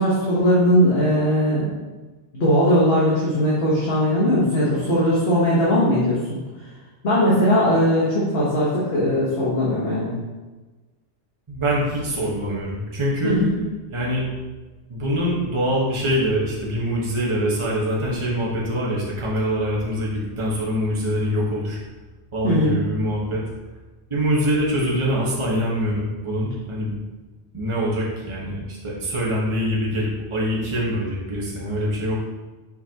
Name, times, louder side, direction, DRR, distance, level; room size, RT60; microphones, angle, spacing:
voice 1, 0.0-1.7 2.3-6.4 7.0-10.1 13.2-13.5 22.4-22.8, equal, 55° left, -7 dB, 1.5 m, -19 dB
voice 2, 11.5-13.4 13.9-14.3 14.9-21.8 22.3-23.4 24.1-27.0 27.5-32.1, equal, 25° right, -5 dB, 1.2 m, -24 dB
6.1 x 5.4 x 2.9 m, 1.2 s
omnidirectional pair, 1.3 m